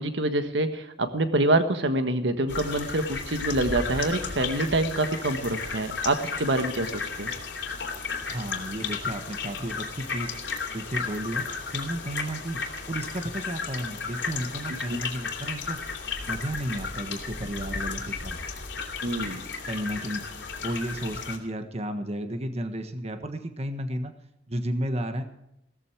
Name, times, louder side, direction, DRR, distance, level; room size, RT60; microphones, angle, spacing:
voice 1, 0.0-7.3 14.9-15.0 19.0-19.4, right 2 dB, 80° right, 8 dB, 1.5 m, -26 dB
sound 1, 2.5-21.4, left 5 dB, 80° left, 3.2 m, -34 dB
voice 2, 8.3-10.3 10.7-11.5 11.7-15.8 16.2-18.4 19.7-20.2 20.6-24.1 24.5-25.2, right 1 dB, 35° right, 7 dB, 1.4 m, -33 dB
16.5 x 14.0 x 4.6 m, 0.82 s
head